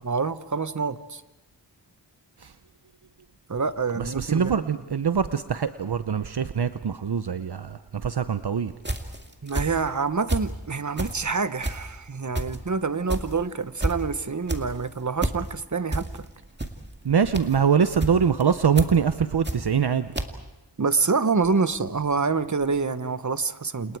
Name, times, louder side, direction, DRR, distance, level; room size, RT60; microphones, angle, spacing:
voice 1, 0.0-1.2 3.5-4.7 9.4-16.2 20.8-24.0, right 4 dB, 40° right, 12 dB, 1.0 m, -26 dB
voice 2, 4.0-8.7 17.0-20.1, right 7 dB, 65° right, 11 dB, 0.8 m, -23 dB
sound 1, 8.8-10.6 10.9-19.9 20.1-20.3, right 1 dB, 25° right, 2.2 m, -30 dB
29.0 x 28.5 x 4.7 m, 1.0 s
wide cardioid pair, 55°, 43 cm